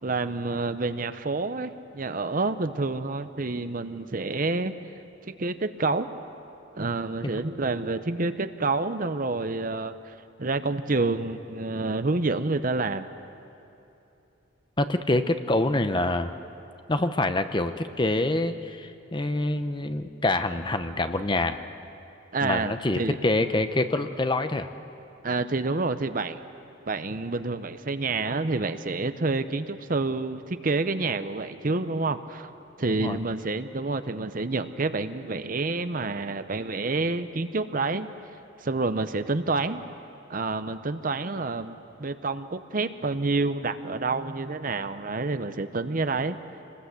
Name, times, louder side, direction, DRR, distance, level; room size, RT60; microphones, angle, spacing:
voice 1, 0.0-4.7 5.2-6.1 6.8-10.1 10.4-13.1 22.3-23.2 25.2-26.4 26.9-32.5 32.8-38.1 38.6-39.8 40.3-46.4, right 3 dB, 40° right, 11 dB, 0.7 m, -28 dB
voice 2, 14.8-16.3 16.9-21.6 22.4-24.7 33.0-33.2, left 2 dB, 20° left, 9 dB, 0.7 m, -26 dB
26.5 x 20.0 x 8.2 m, 2.8 s
head